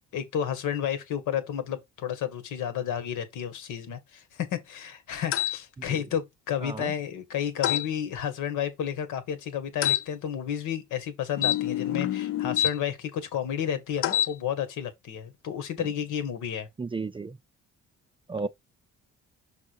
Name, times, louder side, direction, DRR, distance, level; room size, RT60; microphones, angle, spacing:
voice 1, 0.1-16.7, left 9 dB, 85° left, 1.6 m, -31 dB
sound 1, 5.3-5.6 7.6-7.9 9.8-10.0 11.4-12.7 14.0-14.3, left 11 dB, 50° left, 0.4 m, -26 dB
voice 2, 6.6-6.9 16.8-17.4 18.3-18.5, right 4 dB, 15° right, 0.4 m, -33 dB
6.0 x 3.5 x 4.6 m
cardioid pair, 90°, 30 cm